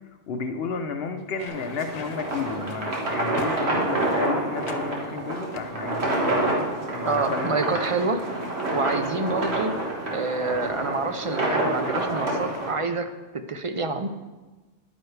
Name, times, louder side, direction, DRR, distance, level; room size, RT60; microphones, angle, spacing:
voice 1, 0.3-7.6, left 5 dB, 70° left, 7 dB, 0.9 m, -32 dB
sound 1, 1.2-4.1 4.6-4.9 5.5-6.7 7.0-7.3, left 5 dB, 50° left, 0.6 m, -42 dB
sound 2, 1.5-12.7, right 1 dB, 80° right, 1.9 m, -28 dB
voice 2, 7.0-8.2 8.7-9.8 10.1-14.1, right 3 dB, 45° right, 8 dB, 0.4 m, -27 dB
10.5 x 9.2 x 3.2 m, 1.2 s
omnidirectional pair, 1.1 m